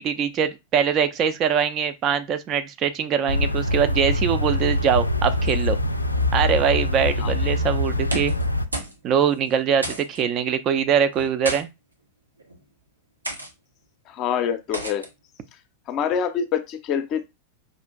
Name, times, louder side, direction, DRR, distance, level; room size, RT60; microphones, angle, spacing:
voice 1, 0.0-5.8 6.3-8.3 9.0-11.7, right 7 dB, 35° right, 0.4 m, -22 dB
sound 1, 3.3-8.7, left 1 dB, 85° left, 0.3 m, -24 dB
voice 2, 7.2-7.5 14.1-15.1 15.9-17.3, left 8 dB, 35° left, 0.5 m, -26 dB
sound 2, 8.1-8.5 8.7-9.0 9.3-9.4 9.8-10.2 11.1-11.6 12.4-12.6 13.2-13.5 14.7-15.1, right 1 dB, 80° right, 0.7 m, -31 dB
5.0 x 2.4 x 2.3 m
figure-of-eight pair, 90°, 0 cm